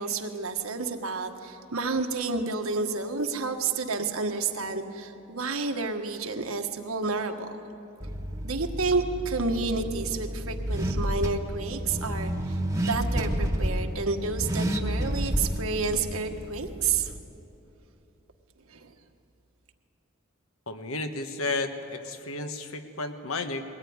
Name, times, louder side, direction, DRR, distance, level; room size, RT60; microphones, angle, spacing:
voice 1, 0.0-7.5 8.4-17.1 18.7-18.9, right 4 dB, 85° right, 4 dB, 1.5 m, -30 dB
Car / Accelerating revving vroom, 8.0-17.2, equal, 15° right, 1.3 m, -30 dB
voice 2, 20.7-23.6, left 3 dB, 75° left, 7 dB, 1.4 m, -32 dB
22.0 x 18.0 x 9.6 m, 3.0 s
head